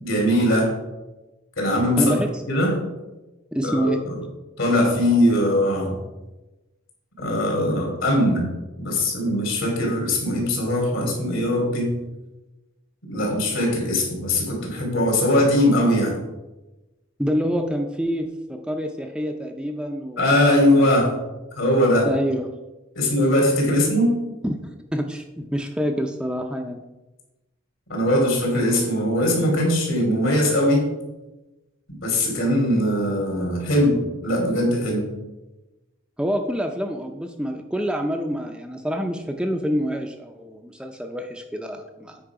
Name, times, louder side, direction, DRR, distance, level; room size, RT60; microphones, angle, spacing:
voice 1, 0.0-0.7 1.6-2.1 2.5-2.8 3.6-4.1 4.6-6.0 7.2-8.5 8.8-11.9 13.1-16.2 20.2-21.1 21.6-22.1 22.9-24.1 27.9-30.8 32.0-35.1, left 1 dB, 75° left, 0 dB, 2.8 m, -20 dB
voice 2, 2.0-2.4 3.5-4.1 17.2-20.2 22.0-22.6 23.6-23.8 24.4-26.8 36.2-42.2, equal, 5° right, 4 dB, 0.4 m, -27 dB
8.7 x 4.9 x 4.7 m, 1.1 s
head